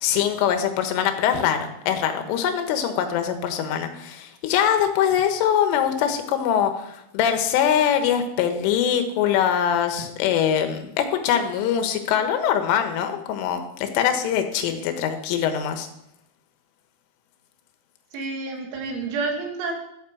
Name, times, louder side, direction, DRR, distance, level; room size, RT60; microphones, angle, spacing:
voice 1, 0.0-15.9, left 9 dB, 75° left, 7 dB, 3.7 m, -23 dB
voice 2, 18.1-19.7, right 3 dB, 70° right, 1 dB, 4.5 m, -29 dB
13.0 x 7.5 x 7.1 m, 0.80 s
omnidirectional pair, 5.9 m